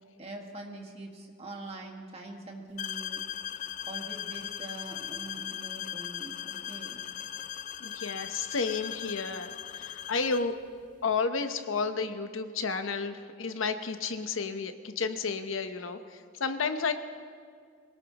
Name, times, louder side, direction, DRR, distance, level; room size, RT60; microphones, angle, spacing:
voice 1, 0.2-3.2 3.9-7.0, right 2 dB, 30° right, 1 dB, 1.7 m, -43 dB
sound 1, 2.8-10.5, left 9 dB, 40° left, 0.3 m, -38 dB
voice 2, 7.8-10.5 11.0-16.9, left 4 dB, 85° left, 8 dB, 0.9 m, -32 dB
24.0 x 18.0 x 3.0 m, 2.1 s
head